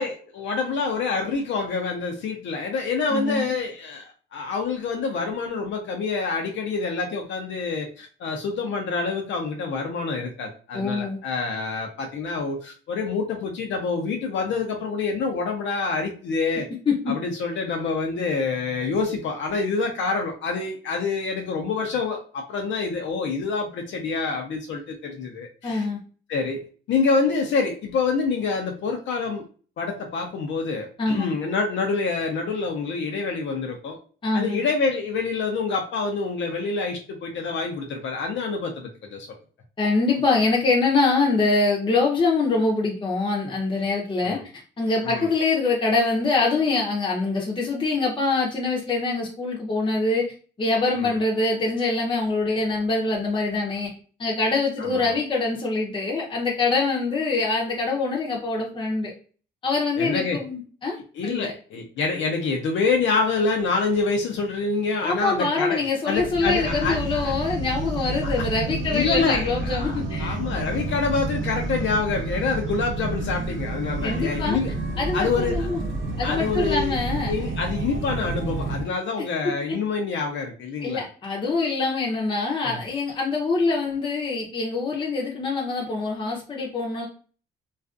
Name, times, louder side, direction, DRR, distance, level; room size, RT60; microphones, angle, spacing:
voice 1, 0.0-16.7 17.1-25.9 26.3-29.4 29.8-34.0 34.3-39.3 44.2-44.4 45.0-45.3 51.0-51.2 54.8-55.1 60.0-60.4 61.1-65.8 66.0-67.3 68.2-68.5 68.9-74.7 75.1-75.7 76.2-77.0 77.3-81.0 82.6-82.8, left 4 dB, 70° left, 2 dB, 0.5 m, -27 dB
voice 2, 3.1-3.5 10.7-11.2 16.9-17.1 25.6-26.0 31.0-31.3 34.2-34.6 39.8-50.2 50.6-53.9 54.2-59.1 59.6-61.0 61.2-61.5 65.0-70.4 74.0-74.6 75.0-75.8 76.2-77.3 80.8-87.1, left 3 dB, 25° left, -2 dB, 0.6 m, -24 dB
sound 1, 66.1-78.8, right 2 dB, 75° right, 0.7 m, -30 dB
2.4 x 2.3 x 2.4 m, 0.39 s
cardioid pair, 90°, 20 cm